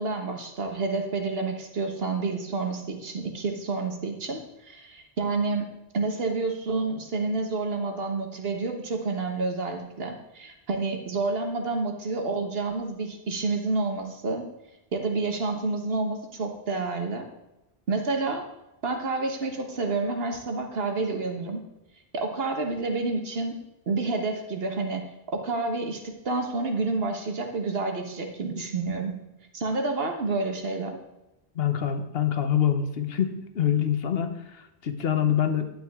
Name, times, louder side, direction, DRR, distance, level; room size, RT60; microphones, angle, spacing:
voice 1, 0.0-5.7 5.9-14.5 14.9-17.3 17.9-18.4 18.8-21.6 22.1-23.6 23.9-29.2 29.5-31.0, right 3 dB, 70° right, 4 dB, 1.4 m, -29 dB
voice 2, 31.5-35.7, left 9 dB, 70° left, 8 dB, 1.1 m, -25 dB
10.5 x 8.9 x 3.6 m, 0.96 s
omnidirectional pair, 1.0 m